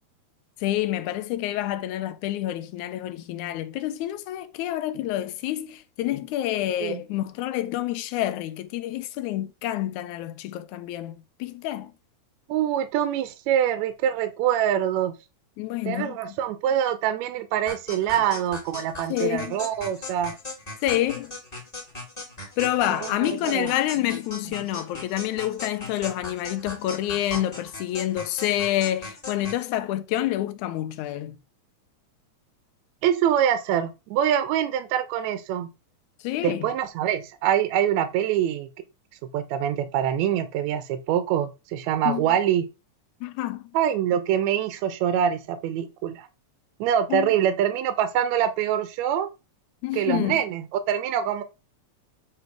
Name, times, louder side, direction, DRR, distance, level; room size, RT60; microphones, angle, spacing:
voice 1, 0.6-11.9 15.6-16.2 19.1-19.6 20.8-21.3 22.6-31.4 36.2-36.7 42.0-42.3 43.2-43.7 47.1-47.3 49.8-50.4, left 13 dB, 80° left, 2.0 m, -28 dB
voice 2, 12.5-15.1 15.9-20.4 23.0-23.7 33.0-35.7 36.4-38.7 39.3-42.7 43.7-46.3 46.8-49.3 49.9-50.6 50.9-51.4, right 10 dB, 75° right, 1.8 m, -24 dB
sound 1, 17.7-29.6, left 2 dB, 15° left, 1.4 m, -38 dB
7.7 x 3.2 x 4.6 m
omnidirectional pair, 3.5 m